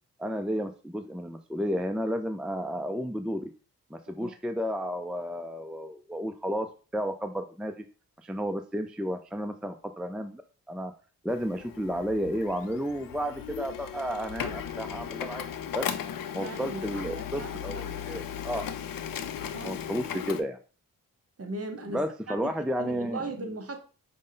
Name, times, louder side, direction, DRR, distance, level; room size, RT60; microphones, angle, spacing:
voice 1, 0.2-3.5 3.9-6.7 6.9-7.8 8.2-10.4 10.7-10.9 11.2-15.4 15.7-15.9 16.3-18.6 19.6-20.6 21.9-23.2, equal, ahead, 0.4 m, -32 dB
Printer, 11.3-20.4, left 8 dB, 65° left, 0.5 m, -37 dB
voice 2, 16.4-17.9 19.5-19.8 21.4-22.5 22.8-23.8, right 2 dB, 40° right, 1.1 m, -38 dB
5.2 x 2.2 x 3.8 m
cardioid pair, 50°, 36 cm